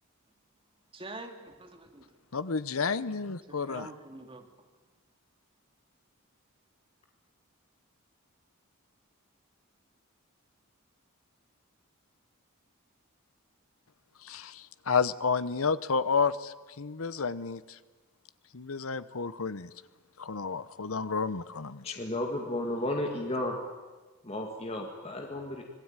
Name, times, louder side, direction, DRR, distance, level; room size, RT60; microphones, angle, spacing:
voice 1, 0.9-2.1 3.5-4.5, right 2 dB, 25° right, 5 dB, 2.4 m, -45 dB
voice 2, 2.3-3.9 14.2-17.8 18.5-19.7 20.2-21.9, left 5 dB, 75° left, 15 dB, 0.9 m, -31 dB
voice 3, 21.8-23.6 24.2-25.6, left 1 dB, 30° left, 2 dB, 2.2 m, -33 dB
25.5 x 19.0 x 9.1 m, 1.3 s
head